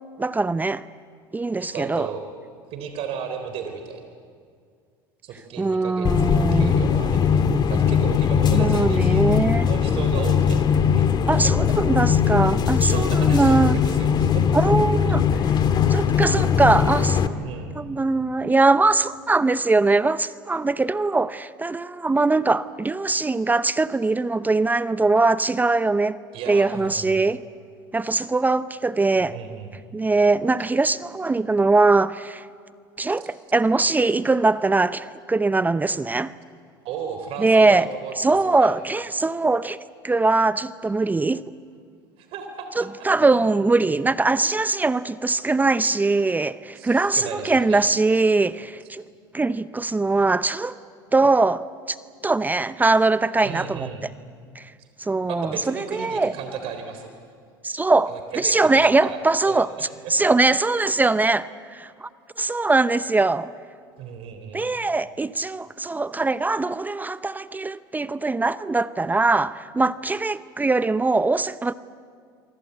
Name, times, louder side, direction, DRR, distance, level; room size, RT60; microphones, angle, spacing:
voice 1, 0.2-0.8 1.3-2.1 5.6-6.8 8.5-9.7 11.3-13.8 14.5-15.2 15.9-17.3 17.7-26.2 26.5-27.4 27.9-29.3 29.9-32.5 33.0-36.3 37.4-37.9 38.2-41.4 42.8-49.0 49.3-50.8 51.1-52.0 52.2-53.9 54.5-54.7 55.0-56.3 57.6-59.7 60.1-62.1 62.4-63.5 64.5-71.7, right 3 dB, 15° right, 0.7 m, -21 dB
voice 2, 1.6-2.2 2.7-4.0 5.2-10.6 11.0-11.3 11.9-12.0 12.3-14.4 17.4-17.7 26.3-27.1 29.2-29.8 36.8-38.7 42.2-42.9 45.8-45.9 46.7-47.8 53.4-54.1 54.8-54.9 55.2-57.1 58.1-60.2 64.0-64.7, right 7 dB, 55° right, 3.9 m, -35 dB
sound 1, 6.0-17.3, left 7 dB, 40° left, 1.9 m, -20 dB
27.0 x 24.0 x 8.2 m
hypercardioid pair, 80°, 11 cm